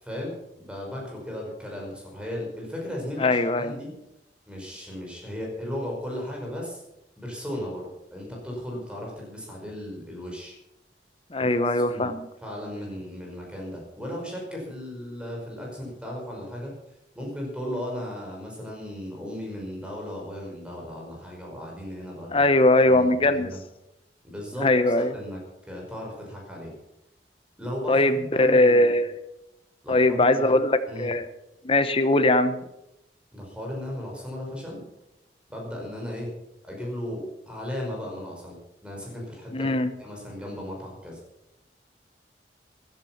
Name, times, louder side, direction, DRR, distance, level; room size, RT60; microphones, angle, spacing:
voice 1, 0.0-3.9 4.5-6.8 7.2-10.6 11.4-12.1 12.4-16.7 17.2-22.4 22.8-23.6 24.2-24.7 25.0-25.4 25.7-26.7 27.6-28.9 29.8-30.6 30.9-31.1 33.3-34.8 35.5-36.3 36.6-38.6 38.8-39.7 40.0-41.2, left 1 dB, 5° right, -1 dB, 5.4 m, -36 dB
voice 2, 3.2-3.8 11.3-12.3 22.3-23.5 24.6-25.2 27.9-29.1 29.9-31.3 31.6-32.6 39.5-39.9, left 2 dB, 30° left, 10 dB, 1.0 m, -21 dB
16.0 x 11.5 x 5.8 m, 0.86 s
head